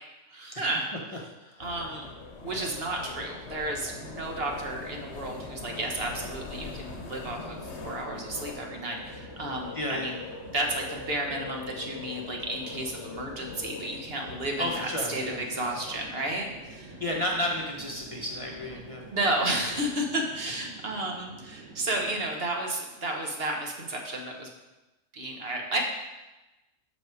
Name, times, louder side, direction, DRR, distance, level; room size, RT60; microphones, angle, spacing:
voice 1, 0.3-0.9 1.6-2.0 2.4-10.2 10.5-17.0 19.1-24.5 25.1-25.8, right 1 dB, 55° right, 1 dB, 1.3 m, -32 dB
sound 1, 1.6-20.0, left 4 dB, 65° left, 1.2 m, -43 dB
Chatter / Fixed-wing aircraft airplane, 3.6-22.5, right 4 dB, 75° right, 1.2 m, -48 dB
voice 2, 9.7-10.2 14.6-15.4 17.0-19.0, left 1 dB, 30° left, -2 dB, 0.9 m, -32 dB
7.6 x 6.4 x 4.8 m, 1.0 s
omnidirectional pair, 1.3 m